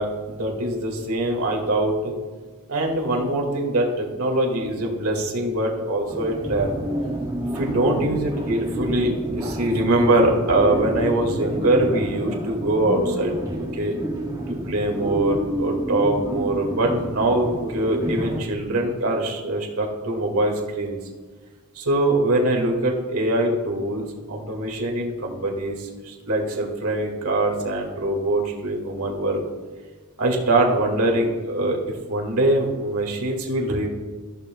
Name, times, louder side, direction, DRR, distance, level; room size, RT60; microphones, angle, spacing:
voice 1, 0.0-2.1 2.7-6.7 7.5-13.4 13.7-14.0 14.5-21.0 21.7-24.0 24.3-29.4 30.2-31.8 32.1-33.9, right 1 dB, 80° right, 0 dB, 1.9 m, -23 dB
sound 1, 6.1-18.4, right 1 dB, 15° right, 1.7 m, -29 dB
14.5 x 7.1 x 2.3 m, 1.4 s
head